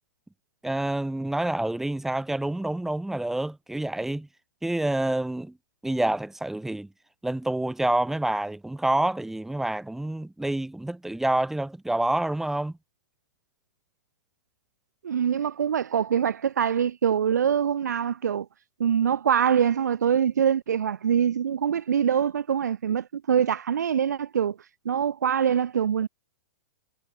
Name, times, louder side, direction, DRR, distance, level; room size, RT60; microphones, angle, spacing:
voice 1, 0.6-4.3 4.6-5.5 5.8-6.9 7.2-12.7, right 1 dB, 5° right, 5.3 m, -27 dB
voice 2, 15.0-18.5 18.8-24.6 24.8-26.1, right 8 dB, 85° right, 1.1 m, -24 dB
hypercardioid pair, 125°, 9 cm